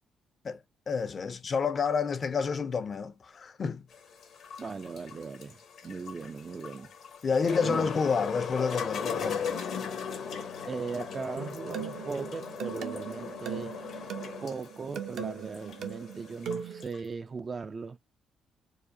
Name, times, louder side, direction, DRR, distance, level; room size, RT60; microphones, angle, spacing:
voice 1, 0.9-3.9 7.2-9.6, left 5 dB, 45° left, 0.6 m, -29 dB
sound 1, 3.9-17.0, left 6 dB, 70° left, 1.1 m, -38 dB
voice 2, 4.6-5.6 5.8-6.9 7.6-7.9 10.7-13.7 14.4-18.0, right 5 dB, 35° right, 0.4 m, -38 dB
sound 2, 11.3-16.8, right 7 dB, 75° right, 0.8 m, -39 dB
4.8 x 2.1 x 2.7 m
cardioid pair, 90°, 0 cm